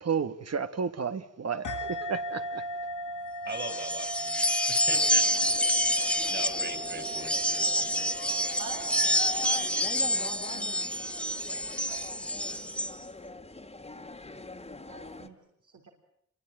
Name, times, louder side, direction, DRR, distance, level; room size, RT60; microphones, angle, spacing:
voice 1, 0.0-2.6, right 6 dB, 55° right, 1.5 m, -32 dB
sound 1, 1.6-10.7, right 1 dB, 85° left, 1.5 m, -39 dB
voice 2, 3.4-5.5 5.9-8.1, right 3 dB, 35° right, 3.7 m, -40 dB
sound 2, 3.5-12.9, equal, 5° left, 1.3 m, -28 dB
sound 3, 4.9-15.3, left 2 dB, 20° left, 1.9 m, -44 dB
voice 3, 8.6-11.1 11.4-12.4 14.9-15.9, right 5 dB, 80° right, 3.7 m, -48 dB
28.5 x 23.5 x 8.9 m
wide cardioid pair, 135°, 30 cm